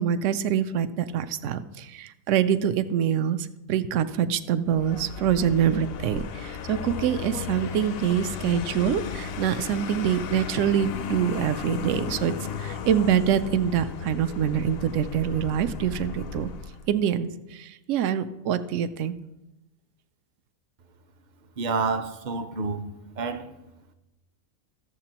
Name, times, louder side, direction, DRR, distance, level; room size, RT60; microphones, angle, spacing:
voice 1, 0.0-16.5 16.9-19.1, right 9 dB, 70° right, 12 dB, 0.9 m, -25 dB
Vehicle, 4.7-16.9, left 6 dB, 65° left, 0.6 m, -35 dB
voice 2, 21.6-22.8 23.2-23.5, right 4 dB, 50° right, 8 dB, 0.5 m, -28 dB
14.0 x 7.3 x 2.9 m, 0.99 s
omnidirectional pair, 1.4 m